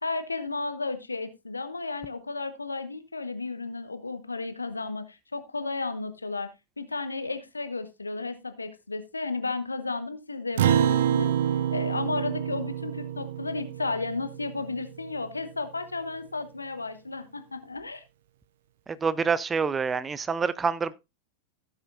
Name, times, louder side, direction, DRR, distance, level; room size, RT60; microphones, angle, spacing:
voice 1, 0.0-6.5 6.8-18.0, left 3 dB, 80° left, 1.0 m, -33 dB
Acoustic guitar, 10.6-15.3, right 10 dB, 60° right, 0.6 m, -27 dB
voice 2, 19.0-20.9, right 5 dB, 15° right, 0.5 m, -26 dB
16.0 x 7.3 x 2.5 m
figure-of-eight pair, 90°, 0 cm